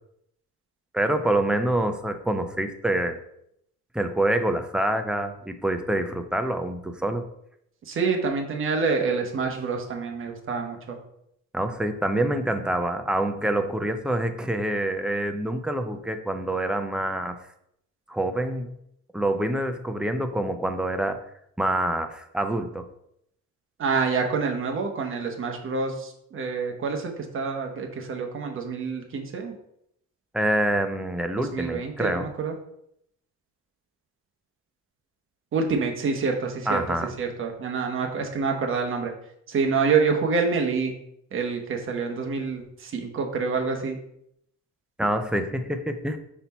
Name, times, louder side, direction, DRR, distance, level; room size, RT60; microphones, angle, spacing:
voice 1, 0.9-3.2 3.9-7.2 11.5-17.4 18.1-18.7 19.1-21.2 21.6-22.8 30.3-32.3 36.7-37.1 45.0-46.2, right 1 dB, 5° right, 6 dB, 0.3 m, -26 dB
voice 2, 7.9-11.0 23.8-29.5 31.5-32.5 35.5-36.8 37.2-39.1 39.5-40.9 41.3-44.0, right 5 dB, 40° right, 3 dB, 1.0 m, -27 dB
5.5 x 4.2 x 4.1 m, 0.74 s
cardioid pair, 170°, 31 cm